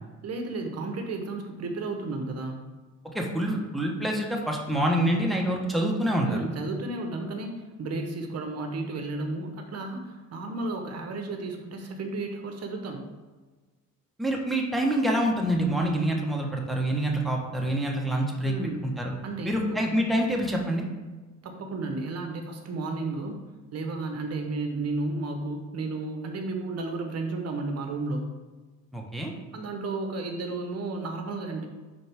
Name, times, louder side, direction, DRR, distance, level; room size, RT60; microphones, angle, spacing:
voice 1, 0.2-2.7 6.2-13.1 18.4-18.9 19.2-19.8 21.4-23.4 23.7-28.2 29.5-31.6, right 2 dB, 55° right, 4 dB, 1.0 m, -33 dB
voice 2, 3.1-6.4 14.2-18.5 18.8-19.1 19.4-20.8 28.9-29.3, right 1 dB, ahead, -1 dB, 1.1 m, -26 dB
10.5 x 3.9 x 3.5 m, 1.3 s
cardioid pair, 120°, 30 cm